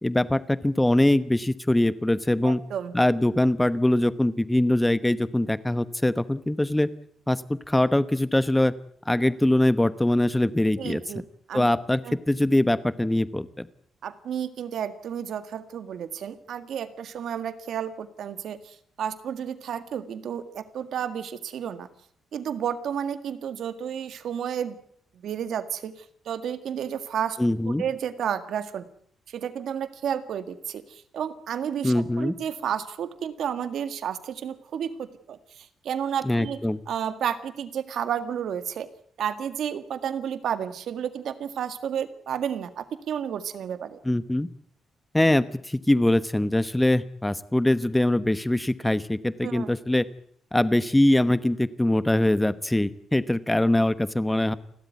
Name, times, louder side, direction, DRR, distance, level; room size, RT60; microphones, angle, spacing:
voice 1, 0.0-2.6 2.9-6.9 7.3-8.7 9.1-11.0 11.5-13.7 27.4-27.8 31.8-32.3 36.2-36.8 44.0-44.5 45.1-50.0 50.5-54.5, left 1 dB, 5° left, 14 dB, 1.0 m, -23 dB
voice 2, 2.4-2.9 10.8-11.2 11.5-11.6 12.0-12.2 14.0-21.9 22.3-24.8 25.2-25.9 26.3-27.4 27.7-28.9 29.3-36.6 36.9-38.9 39.2-44.0 49.4-49.7, right 8 dB, 65° right, 11 dB, 1.8 m, -31 dB
29.5 x 13.0 x 9.3 m, 0.65 s
cardioid pair, 160°, 0 cm